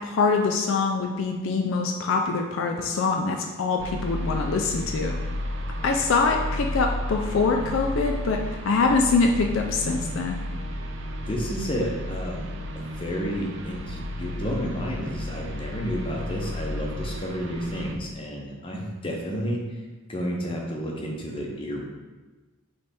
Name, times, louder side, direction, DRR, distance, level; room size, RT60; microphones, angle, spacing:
voice 1, 0.0-5.1 5.8-10.4, left 4 dB, 65° left, 2 dB, 0.4 m, -24 dB
sound 1, 3.8-17.9, left 1 dB, 60° right, 0.4 m, -33 dB
voice 2, 11.3-19.8 20.1-21.8, equal, 25° left, -1 dB, 0.6 m, -31 dB
3.4 x 3.2 x 4.1 m, 1.2 s
head